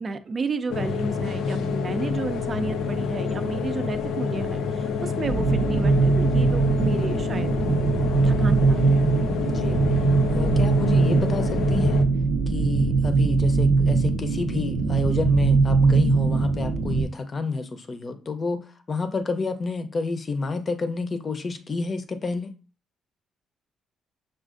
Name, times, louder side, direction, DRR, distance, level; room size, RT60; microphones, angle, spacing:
voice 1, 0.0-7.6 8.2-9.1, right 3 dB, 40° right, 10 dB, 0.4 m, -32 dB
sound 1, 0.7-12.0, left 5 dB, 80° left, 0.4 m, -28 dB
sound 2, 5.2-17.0, right 4 dB, 85° right, 0.6 m, -21 dB
voice 2, 9.5-9.8 10.3-12.0 12.5-22.5, left 4 dB, 35° left, 8 dB, 0.6 m, -29 dB
6.2 x 2.4 x 2.5 m, 0.35 s
cardioid pair, 90°, 0 cm